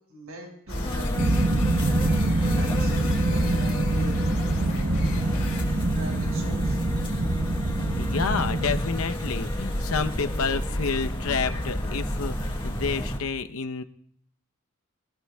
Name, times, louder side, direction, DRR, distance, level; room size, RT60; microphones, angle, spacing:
voice 1, 0.1-1.3 2.5-4.2 4.6-5.2 5.9-6.8, equal, 85° right, 0 dB, 5.2 m, -40 dB
sound 1, 0.7-5.6, left 3 dB, 70° left, 2.6 m, -40 dB
sound 2, 0.7-13.2, left 1 dB, 25° left, 1.5 m, -30 dB
sound 3, 1.2-8.8, right 2 dB, 55° right, 0.9 m, -25 dB
voice 2, 8.0-13.8, left 5 dB, 85° left, 8 dB, 0.8 m, -29 dB
25.0 x 15.5 x 2.3 m, 0.63 s
head